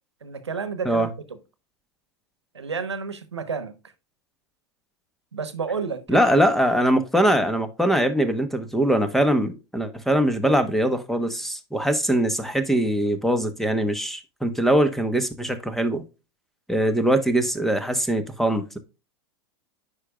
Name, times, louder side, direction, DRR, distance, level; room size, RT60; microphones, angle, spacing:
voice 1, 0.2-1.1 2.5-3.7 5.3-6.2, right 5 dB, 90° right, 1.0 m, -30 dB
voice 2, 6.1-16.0 16.7-18.8, right 1 dB, ahead, 1.1 m, -22 dB
9.5 x 5.2 x 2.3 m
hypercardioid pair, 95°, 14 cm